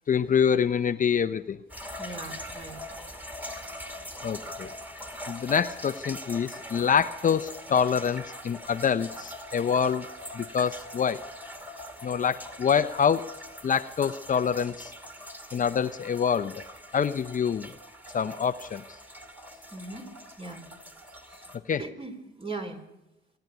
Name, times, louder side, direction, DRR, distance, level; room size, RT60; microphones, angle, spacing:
voice 1, 0.1-1.6 4.2-4.7 5.3-10.1 10.3-11.2 12.0-13.3 13.6-14.9 15.5-16.6 16.9-17.7 18.1-18.8 21.7-21.8, left 7 dB, 40° left, 10 dB, 0.7 m, -26 dB
sound 1, 1.7-21.6, equal, 10° right, 2.4 m, -42 dB
voice 2, 2.0-2.8 19.7-20.1 20.4-20.6 21.2-21.4 21.8-22.8, right 3 dB, 30° right, 5 dB, 4.0 m, -39 dB
26.0 x 10.5 x 9.5 m, 0.97 s
cardioid pair, 90°, 20 cm